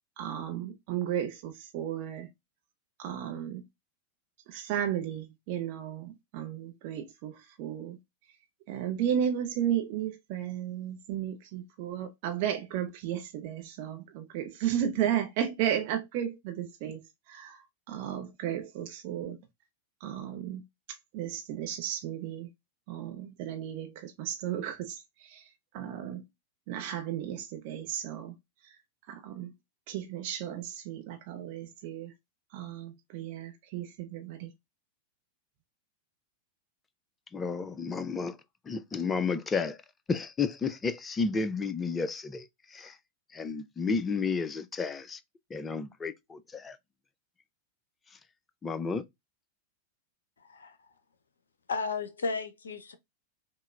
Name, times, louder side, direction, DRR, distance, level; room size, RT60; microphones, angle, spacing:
voice 1, 0.2-2.3 3.0-3.6 4.5-8.0 8.7-19.4 20.0-20.6 21.1-22.5 22.9-26.2 26.7-28.3 29.1-29.5 29.9-32.1 32.5-34.5, right 10 dB, 45° right, 0.6 m, -34 dB
voice 2, 37.3-38.4 38.7-39.8 40.1-42.5 42.7-43.0 43.3-45.2 45.5-46.8 48.6-49.0, left 4 dB, 15° left, 0.4 m, -32 dB
voice 3, 50.4-50.9 51.7-52.9, left 4 dB, 70° left, 0.6 m, -34 dB
5.4 x 2.1 x 2.2 m
figure-of-eight pair, 90°, 0 cm